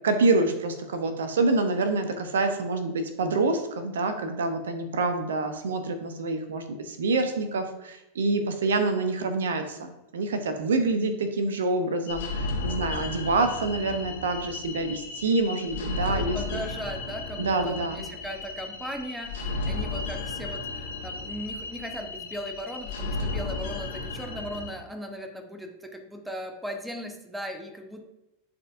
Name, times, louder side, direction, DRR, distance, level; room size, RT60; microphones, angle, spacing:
voice 1, 0.0-16.6 17.4-18.0, right 3 dB, 65° right, 7 dB, 0.8 m, -27 dB
sound 1, 12.1-24.7, left 3 dB, 55° left, 1.6 m, -34 dB
voice 2, 16.1-28.0, equal, 5° right, 4 dB, 1.0 m, -38 dB
11.0 x 4.4 x 2.6 m, 0.91 s
figure-of-eight pair, 90°, 0 cm